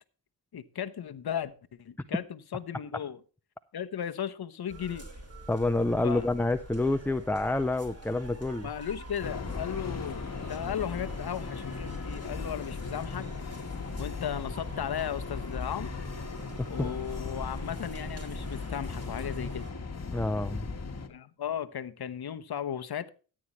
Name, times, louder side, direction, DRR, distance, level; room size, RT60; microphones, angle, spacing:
voice 1, 0.5-1.5 1.8-3.2 3.7-5.0 6.0-6.3 8.6-13.3 14.0-15.9 16.7-19.7 21.1-23.1, left 9 dB, 55° left, 1.0 m, -36 dB
sound 1, 4.7-19.7, right 1 dB, 30° right, 3.7 m, -45 dB
voice 2, 5.5-8.7 16.6-16.9 20.1-20.7, left 2 dB, 5° left, 0.5 m, -28 dB
sound 2, 9.2-21.1, left 4 dB, 35° left, 1.4 m, -38 dB
14.0 x 8.8 x 3.1 m
cardioid pair, 75°, 46 cm